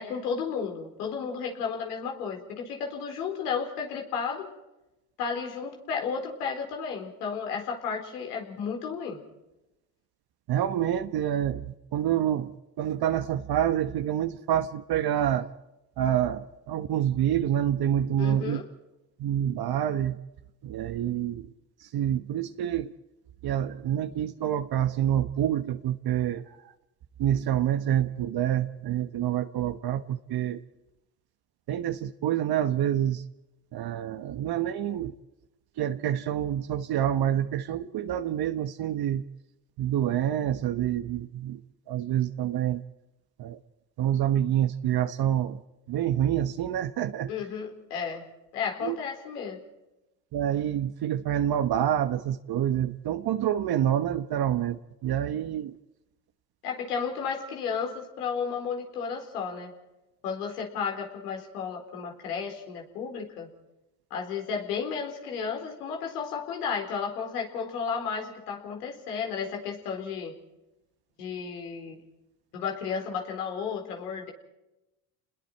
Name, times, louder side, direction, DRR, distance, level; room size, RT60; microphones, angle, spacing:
voice 1, 0.0-4.5 5.2-9.2 18.2-18.6 47.3-48.2 48.5-49.6 56.6-59.7 60.2-63.5 64.1-70.3 71.2-72.0 72.5-74.3, left 6 dB, 90° left, 2 dB, 4.3 m, -33 dB
voice 2, 10.5-15.5 16.0-18.6 19.2-20.2 20.6-21.5 21.8-22.9 23.4-26.7 27.2-30.6 31.7-33.2 33.7-35.1 35.8-39.2 39.8-41.6 41.9-42.8 43.4-43.6 44.0-45.6 45.9-47.3 48.8-49.0 50.3-55.8, right 10 dB, 55° right, 8 dB, 1.2 m, -27 dB
29.0 x 21.0 x 4.6 m, 0.95 s
hypercardioid pair, 70°, 45 cm